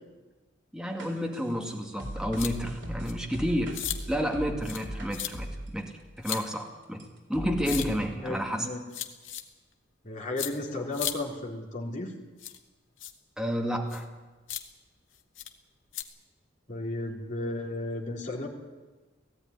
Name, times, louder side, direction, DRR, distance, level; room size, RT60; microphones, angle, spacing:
voice 1, 0.7-3.8 4.1-5.9 6.2-7.0 7.3-8.7 13.4-14.0, equal, 5° right, 2 dB, 2.2 m, -30 dB
sound 1, 1.0-5.8 6.3-6.4 7.0-7.1 7.3-8.0, equal, 65° right, 3.8 m, -38 dB
sound 2, 2.4-2.5 3.1-3.2 3.7-4.0 4.6-4.9 5.1-5.3 6.2-6.4 7.6-7.9 8.9-9.4 10.4-10.5 10.9-11.1 12.4-12.6 13.0-13.1 13.9-14.0 14.5-14.6 15.4-15.5 15.9-16.0, left 11 dB, 85° left, 1.7 m, -34 dB
voice 2, 8.1-8.8 10.0-12.1 16.7-18.5, left 2 dB, 40° left, -1 dB, 3.7 m, -34 dB
18.0 x 15.5 x 9.8 m, 1.3 s
head